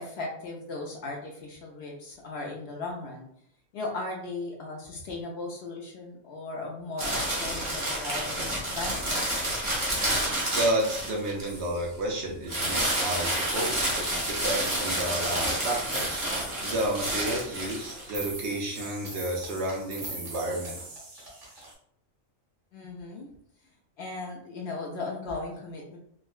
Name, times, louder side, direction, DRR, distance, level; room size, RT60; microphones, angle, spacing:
voice 1, 0.0-3.3 3.7-9.2 22.7-23.3 24.0-26.0, left 3 dB, 65° left, 0 dB, 0.7 m, -37 dB
sound 1, 7.0-11.6 12.5-18.1, right 1 dB, 25° right, 0.8 m, -29 dB
voice 2, 10.5-20.8, right 1 dB, 65° right, -1 dB, 0.9 m, -31 dB
sound 2, 11.4-12.3 12.5-21.7, right 2 dB, 85° right, 1.6 m, -43 dB
sound 3, 13.6-15.5 15.7-21.7, right 1 dB, 45° right, 1.1 m, -48 dB
3.6 x 2.1 x 2.3 m, 0.69 s
omnidirectional pair, 1.3 m